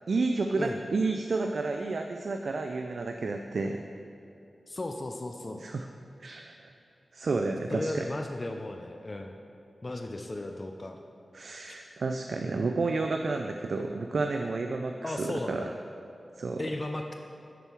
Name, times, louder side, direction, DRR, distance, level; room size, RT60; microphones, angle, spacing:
voice 1, 0.1-3.8 5.6-5.9 6.2-6.7 7.1-8.0 11.3-15.6 16.4-16.7, right 3 dB, 70° right, 4 dB, 0.4 m, -31 dB
voice 2, 4.7-5.6 7.7-9.4 9.8-11.0 11.7-11.8 15.0-15.7 16.6-17.1, left 2 dB, 40° left, 4 dB, 0.5 m, -35 dB
6.7 x 6.2 x 4.5 m, 2.9 s
cardioid pair, 50°, 0 cm